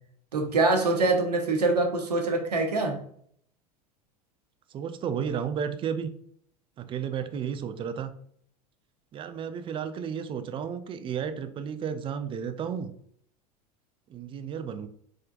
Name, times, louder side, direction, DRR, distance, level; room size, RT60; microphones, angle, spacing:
voice 1, 0.3-3.0, right 3 dB, 75° right, 3 dB, 0.9 m, -24 dB
voice 2, 4.7-6.1 6.8-8.1 9.1-12.9 14.1-14.9, right 7 dB, 25° right, 10 dB, 0.5 m, -33 dB
4.3 x 3.7 x 2.5 m, 0.62 s
figure-of-eight pair, 80°, 20 cm